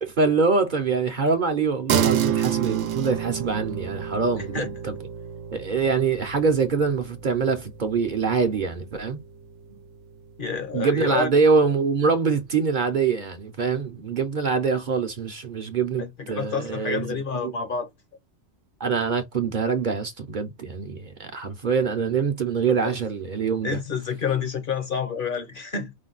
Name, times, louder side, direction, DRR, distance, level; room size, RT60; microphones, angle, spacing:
voice 1, 0.0-5.0 5.5-9.2 10.7-17.5 18.8-23.8, right 5 dB, 50° right, 0.8 m, -24 dB
sound 1, 1.9-11.6, right 10 dB, 90° right, 0.9 m, -30 dB
voice 2, 10.4-11.3 16.0-17.9 22.7-23.0 23.6-25.9, left 6 dB, 50° left, 1.0 m, -29 dB
5.1 x 2.2 x 3.9 m
omnidirectional pair, 1.2 m